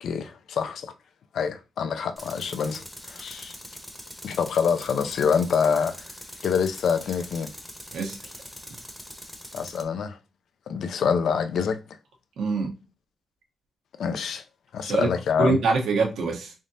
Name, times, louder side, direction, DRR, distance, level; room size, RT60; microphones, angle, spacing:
voice 1, 0.0-0.9 1.3-3.5 4.2-6.1 6.4-7.5 9.5-10.2 10.7-11.8 14.0-14.4 14.7-15.6, left 6 dB, 70° left, 0.4 m, -26 dB
Tools, 2.2-9.8, equal, 5° left, 0.7 m, -43 dB
voice 2, 12.4-12.8 14.8-15.1 15.4-16.5, right 4 dB, 85° right, 1.0 m, -24 dB
3.6 x 3.6 x 2.7 m
cardioid pair, 125°, 0 cm